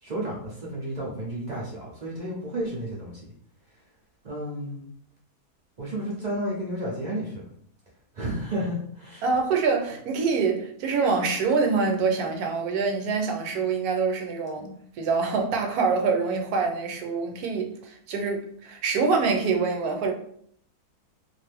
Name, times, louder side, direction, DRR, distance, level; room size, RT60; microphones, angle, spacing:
voice 1, 0.0-3.2 4.2-4.8 5.8-7.4 8.1-9.2, right 1 dB, 50° right, 0.5 m, -32 dB
voice 2, 9.2-20.1, right 4 dB, 75° right, 1.0 m, -25 dB
2.5 x 2.5 x 3.3 m
omnidirectional pair, 1.7 m